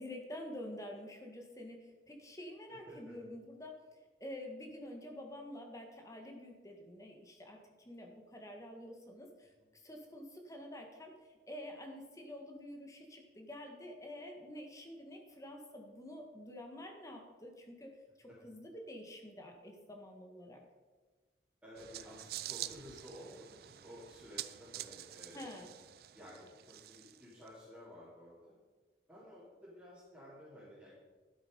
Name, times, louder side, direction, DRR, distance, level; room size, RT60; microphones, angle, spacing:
voice 1, 0.0-20.6 25.3-25.7, left 1 dB, 20° left, 2 dB, 1.5 m, -48 dB
voice 2, 2.7-3.2 18.3-18.4 21.6-25.6 26.1-28.6 29.1-31.0, equal, 10° right, -11 dB, 3.2 m, -53 dB
sound 1, 21.8-27.5, right 14 dB, 55° right, 0.4 m, -47 dB
12.5 x 7.2 x 5.4 m, 1.3 s
head